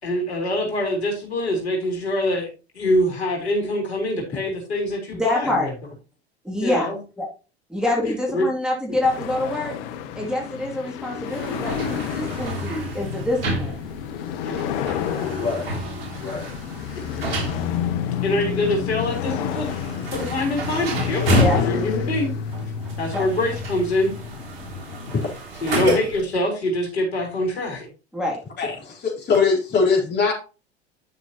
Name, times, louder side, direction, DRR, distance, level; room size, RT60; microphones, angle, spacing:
voice 1, 0.0-2.5 2.7-5.7 6.6-7.0 8.3-8.5 14.4-14.6 18.2-19.8 20.1-21.2 21.5-22.3 23.0-24.1 25.6-27.9, left 1 dB, 75° left, 0 dB, 3.9 m, -24 dB
voice 2, 5.1-5.7 6.4-6.9 7.2-7.3 7.7-9.8 10.2-13.8 21.3-21.6 23.1-23.2 28.1-28.4, left 1 dB, ahead, -1 dB, 2.6 m, -25 dB
sound 1, 9.0-25.3, left 8 dB, 60° left, 1.0 m, -30 dB
sound 2, 11.2-26.3, right 1 dB, 65° right, 2.9 m, -30 dB
voice 3, 28.6-30.3, left 4 dB, 30° left, -1 dB, 3.9 m, -22 dB
11.5 x 6.1 x 2.9 m, 0.32 s
figure-of-eight pair, 80°, 33 cm